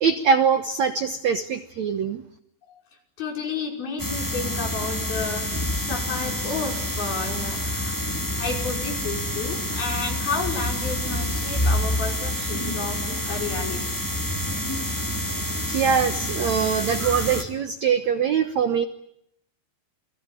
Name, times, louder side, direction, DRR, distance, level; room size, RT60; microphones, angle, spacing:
voice 1, 0.0-2.2 15.7-18.9, right 6 dB, 70° right, 10 dB, 1.7 m, -23 dB
voice 2, 3.2-5.6 5.9-8.0 8.4-13.9, left 4 dB, 60° left, 1 dB, 7.2 m, -31 dB
sound 1, 4.0-17.4, left 1 dB, 5° left, 1.9 m, -27 dB
29.0 x 21.5 x 9.1 m, 0.74 s
omnidirectional pair, 4.8 m